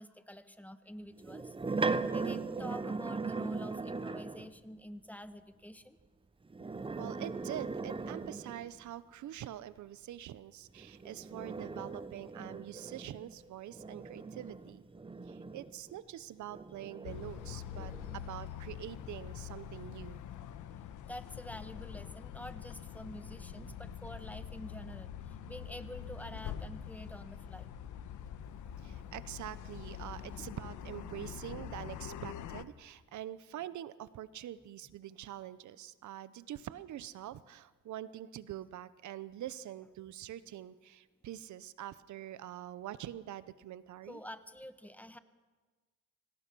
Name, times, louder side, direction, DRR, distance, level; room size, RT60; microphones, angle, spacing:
voice 1, 0.0-6.0 20.7-27.7 30.4-30.5 44.1-45.2, equal, 5° left, 11 dB, 1.3 m, -48 dB
sound 1, 1.2-4.5 6.5-8.8 10.8-16.0 16.5-18.3, right 4 dB, 15° right, 0.8 m, -39 dB
voice 2, 7.0-14.8 15.2-20.2 28.8-44.2, right 12 dB, 70° right, 16 dB, 0.9 m, -45 dB
sound 2, 17.0-32.6, left 10 dB, 80° left, 1.2 m, -45 dB
sound 3, 22.6-32.2, right 4 dB, 45° right, 6.1 m, -58 dB
26.0 x 18.0 x 6.1 m, 1.3 s
cardioid pair, 90°, 30 cm